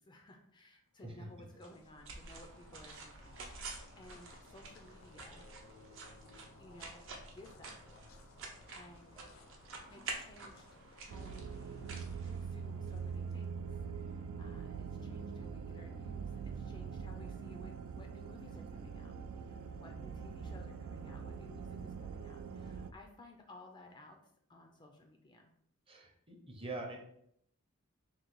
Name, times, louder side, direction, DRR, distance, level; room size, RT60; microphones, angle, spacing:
voice 1, 0.0-5.5 6.6-8.0 8.5-9.2 9.9-10.7 11.0-11.9 12.2-25.5, left 1 dB, 20° left, 3 dB, 0.4 m, -57 dB
sound 1, 0.9-14.2, left 3 dB, 65° left, 0.6 m, -61 dB
sound 2, 1.6-12.9, right 3 dB, 60° right, 0.7 m, -49 dB
sound 3, 11.1-22.9, right 6 dB, 85° right, 0.3 m, -43 dB
voice 2, 25.9-27.0, right 2 dB, 25° right, 1 dB, 0.6 m, -44 dB
3.8 x 2.2 x 4.5 m, 0.70 s
head